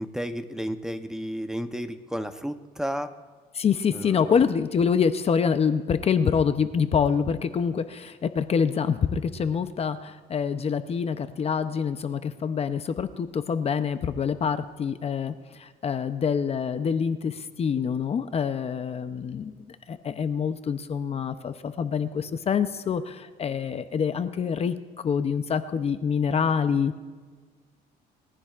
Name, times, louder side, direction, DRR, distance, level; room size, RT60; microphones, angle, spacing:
voice 1, 0.0-3.1 3.9-4.4, equal, 5° right, 8 dB, 0.8 m, -32 dB
voice 2, 3.5-24.7 25.0-27.0, left 6 dB, 35° left, 10 dB, 0.6 m, -26 dB
21.5 x 14.5 x 2.5 m, 1.5 s
cardioid pair, 110°, 17 cm